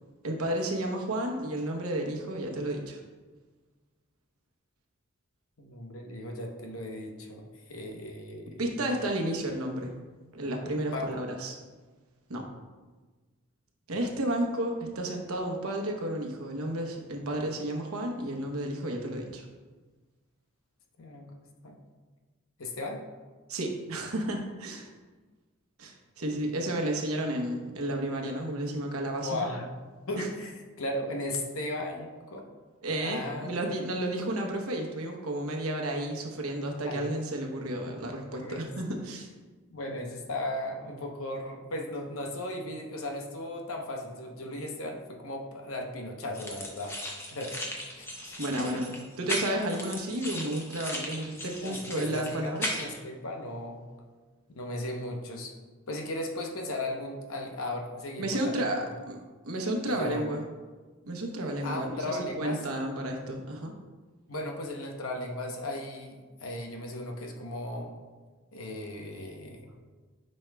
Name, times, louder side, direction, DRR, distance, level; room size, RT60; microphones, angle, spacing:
voice 1, 0.2-3.0 8.6-10.0 10.3-11.6 12.3-12.4 13.9-19.4 23.5-24.9 25.8-29.5 30.2-30.3 32.8-39.3 48.4-48.9 49.2-52.8 58.2-60.4 61.0-63.7, right 1 dB, 85° right, 2 dB, 1.0 m, -32 dB
voice 2, 5.6-8.6 10.9-11.2 21.0-21.4 21.6-21.8 22.6-23.0 29.2-29.7 30.1-32.5 33.0-33.5 36.8-37.0 38.4-38.7 39.7-47.0 47.3-47.6 48.0-49.0 51.6-53.8 54.5-55.5 55.9-58.6 59.8-60.4 61.6-62.7 64.3-67.9 68.5-69.8, left 1 dB, 75° left, 2 dB, 0.9 m, -36 dB
sound 1, 46.3-53.0, left 1 dB, 10° left, 0.6 m, -37 dB
9.0 x 5.4 x 2.3 m, 1.3 s
head